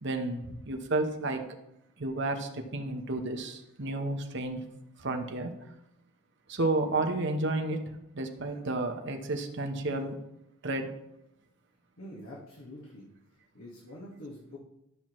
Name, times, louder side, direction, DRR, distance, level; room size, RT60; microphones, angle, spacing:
voice 1, 0.0-1.4 2.0-4.6 5.0-5.7 6.5-10.2 10.6-10.9, right 2 dB, 50° right, 4 dB, 1.0 m, -32 dB
voice 2, 12.0-13.1 13.5-14.6, left 1 dB, 70° left, -5 dB, 1.7 m, -45 dB
12.5 x 6.0 x 3.1 m, 0.86 s
head